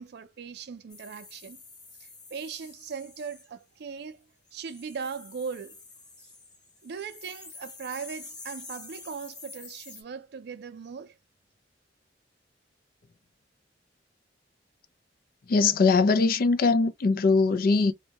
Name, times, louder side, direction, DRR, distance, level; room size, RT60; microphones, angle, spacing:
voice 1, 0.0-1.6 2.0-4.2 4.5-5.8 6.2-6.3 6.8-11.2, right 6 dB, 65° right, 0.4 m, -39 dB
sound 1, 0.9-3.5 4.5-10.0, left 3 dB, 25° left, 0.8 m, -48 dB
voice 2, 15.5-17.9, left 4 dB, 55° left, 0.4 m, -21 dB
2.7 x 2.2 x 2.8 m
head